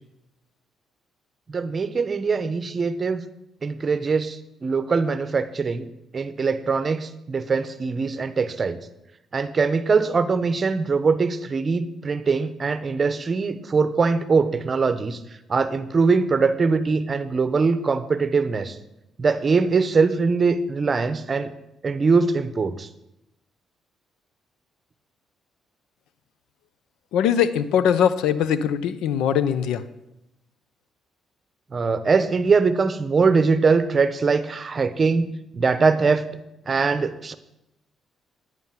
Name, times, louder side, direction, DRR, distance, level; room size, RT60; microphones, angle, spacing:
voice 1, 1.5-3.2 3.6-5.9 6.1-8.9 9.3-15.2 15.5-18.8 19.2-21.5 21.8-22.9 31.7-36.3 36.7-37.3, right 4 dB, 35° right, 13 dB, 0.8 m, -22 dB
voice 2, 27.1-29.8, left 8 dB, 90° left, 14 dB, 0.6 m, -21 dB
9.6 x 9.6 x 5.8 m, 0.88 s
cardioid pair, 90°, 0 cm